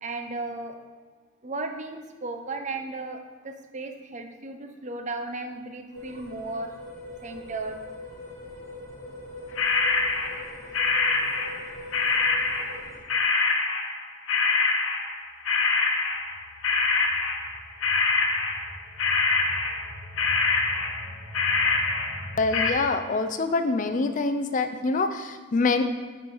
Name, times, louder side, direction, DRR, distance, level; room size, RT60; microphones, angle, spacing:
voice 1, 0.0-0.8 1.4-6.7 7.2-7.8, right 3 dB, 35° right, 5 dB, 0.6 m, -35 dB
sound 1, 5.9-13.0, left 1 dB, 20° left, 2.0 m, -42 dB
sound 2, 9.6-16.4 16.6-18.7 19.0-19.9 20.2-22.7, left 4 dB, 90° left, 0.9 m, -25 dB
sound 3, 14.9-22.5, equal, 10° right, 1.1 m, -45 dB
voice 2, 22.4-25.8, left 3 dB, 40° left, 8 dB, 0.4 m, -25 dB
7.6 x 4.4 x 5.4 m, 1.5 s
head